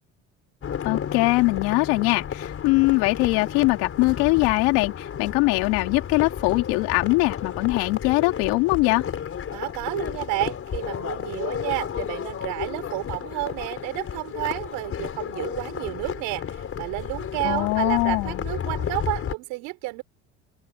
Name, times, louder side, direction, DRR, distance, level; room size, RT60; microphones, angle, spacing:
sound 1, 0.6-19.4, left 8 dB, 40° left, 4.7 m, -32 dB
voice 1, 0.8-9.0 17.4-18.4, left 23 dB, 90° left, 2.6 m, -22 dB
voice 2, 9.5-20.0, right 23 dB, 80° right, 5.7 m, -31 dB
open air
supercardioid pair, 100°, 32 cm